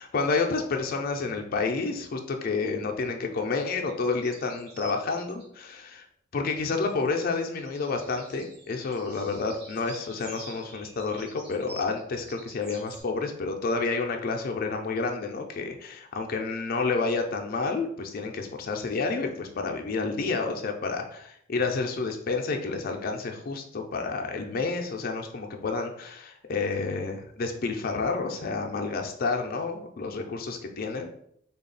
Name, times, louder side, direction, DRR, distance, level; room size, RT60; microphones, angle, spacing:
voice 1, 0.0-6.1 6.3-31.1, left 4 dB, 45° left, 3 dB, 0.4 m, -30 dB
birds background, 3.9-5.5 6.8-13.0, right 1 dB, 55° right, 1.1 m, -48 dB
3.5 x 2.3 x 3.9 m, 0.70 s
head